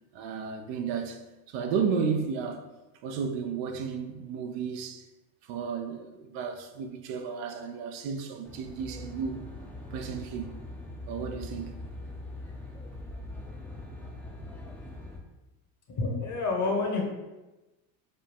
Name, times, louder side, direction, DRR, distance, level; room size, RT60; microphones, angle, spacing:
voice 1, 0.1-1.2 1.5-2.7 3.0-5.1 5.4-9.4 9.9-10.5 11.1-11.8, right 6 dB, 60° right, 0.6 m, -33 dB
Aircraft, 8.4-15.2, left 1 dB, 5° left, 0.6 m, -42 dB
voice 2, 15.9-17.0, left 3 dB, 35° left, 1.1 m, -28 dB
5.0 x 2.2 x 3.4 m
supercardioid pair, 90°, 49 cm